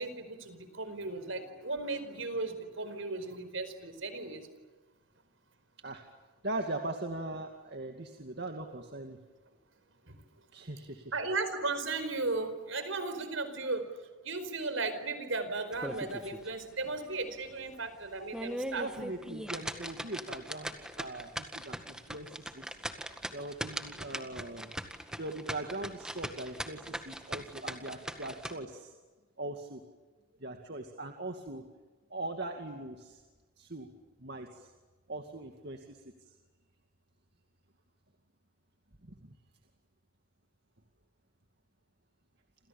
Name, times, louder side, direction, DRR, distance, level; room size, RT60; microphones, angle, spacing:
voice 1, 0.0-4.5 10.1-10.2 11.1-14.0 14.2-18.9, right 3 dB, 70° right, 11 dB, 4.7 m, -36 dB
voice 2, 6.4-9.2 10.5-11.1 18.8-24.7 25.2-28.9 29.4-29.8 30.4-31.6 32.1-33.2 33.6-33.9 34.2-34.7 35.1-36.3 39.0-39.3, right 2 dB, 50° right, 4 dB, 2.3 m, -41 dB
sound 1, 15.7-16.5 16.8-16.9 17.4-17.5 18.1-28.5, right 1 dB, 5° right, 1.8 m, -40 dB
28.5 x 28.0 x 7.2 m, 1.3 s
head